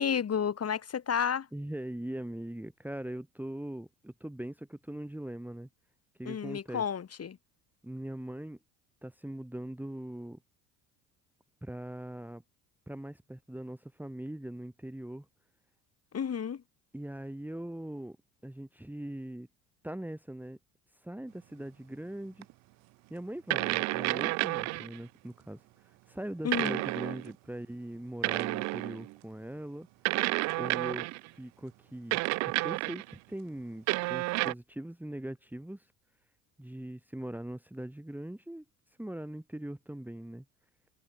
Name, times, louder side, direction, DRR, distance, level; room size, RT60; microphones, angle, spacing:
voice 1, 0.0-1.5 6.2-7.4 16.1-16.6 26.4-26.8, left 7 dB, 35° left, 3.8 m, -31 dB
voice 2, 1.5-5.7 6.2-6.8 7.8-8.6 9.0-10.4 11.6-12.4 12.9-15.3 16.9-18.2 18.4-19.5 19.8-20.6 21.0-22.5 23.1-25.6 26.1-29.9 30.6-35.9 36.6-38.6 39.0-40.4, right 1 dB, 5° right, 2.5 m, -41 dB
sound 1, 22.4-22.5 23.5-25.0 26.5-27.3 28.2-29.1 30.0-31.3 32.1-33.1 33.9-34.5, right 23 dB, 40° right, 0.4 m, -30 dB
figure-of-eight pair, 65°, 45 cm